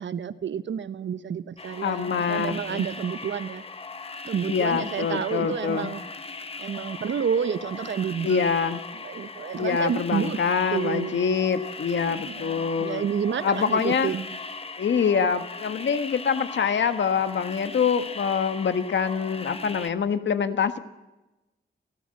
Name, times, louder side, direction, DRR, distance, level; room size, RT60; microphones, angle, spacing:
voice 1, 0.0-3.6 4.2-6.0 6.6-8.4 9.0-10.4 10.7-11.2 12.2-14.4, right 7 dB, 90° right, 13 dB, 1.1 m, -29 dB
sound 1, 1.6-19.9, left 3 dB, 30° left, 1.1 m, -39 dB
voice 2, 1.8-2.8 4.5-5.9 8.2-8.8 9.6-13.0 13.4-14.1 14.8-20.8, left 6 dB, 80° left, 10 dB, 1.5 m, -25 dB
28.5 x 15.0 x 7.8 m, 1.0 s
wide cardioid pair, 160°, 19 cm